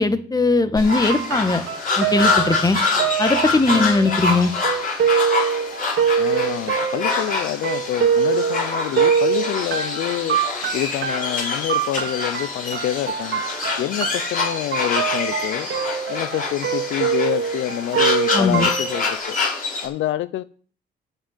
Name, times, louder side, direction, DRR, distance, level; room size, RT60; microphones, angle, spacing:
voice 1, 0.0-1.6 2.0-2.8 3.2-4.5 18.3-18.7, left 3 dB, 20° left, 1.5 m, -19 dB
sound 1, 0.8-19.9, left 4 dB, 45° left, 5.8 m, -26 dB
sound 2, 0.9-19.2, right 7 dB, 65° right, 2.4 m, -24 dB
voice 2, 6.2-10.4 10.7-13.4 13.8-15.7 16.1-19.4 19.8-20.4, left 12 dB, 80° left, 0.6 m, -27 dB
12.5 x 5.4 x 8.9 m
cardioid pair, 90°, 20 cm